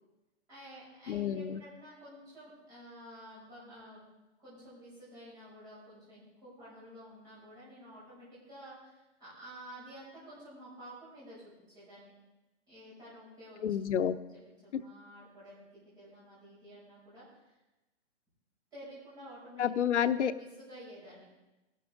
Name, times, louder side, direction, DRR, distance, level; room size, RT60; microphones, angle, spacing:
voice 1, 0.5-4.0 4.4-12.1 12.7-13.6 13.9-17.6 18.7-19.6 20.4-21.2, equal, 10° right, -10 dB, 6.0 m, -51 dB
voice 2, 1.1-1.6 13.6-14.1 14.7-14.8 19.6-20.3, left 9 dB, 80° left, 12 dB, 0.8 m, -29 dB
17.0 x 12.0 x 3.7 m, 1.0 s
hypercardioid pair, 180°, 35 cm